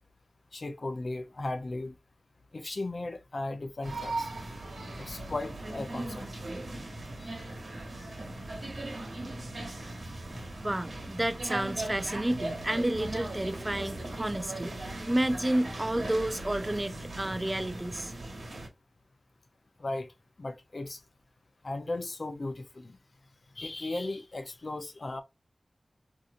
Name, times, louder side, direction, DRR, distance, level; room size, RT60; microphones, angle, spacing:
voice 1, 0.5-2.0 2.5-4.3 5.0-6.2 7.2-7.4 8.0-8.2 19.8-20.1 20.4-21.0 21.6-23.0 23.6-25.2, left 2 dB, 60° left, 0.5 m, -36 dB
sound 1, 3.8-18.7, right 2 dB, 85° right, 1.1 m, -38 dB
voice 2, 10.6-18.1, right 1 dB, 20° right, 0.4 m, -30 dB
3.8 x 2.7 x 2.4 m
wide cardioid pair, 65°, 0 cm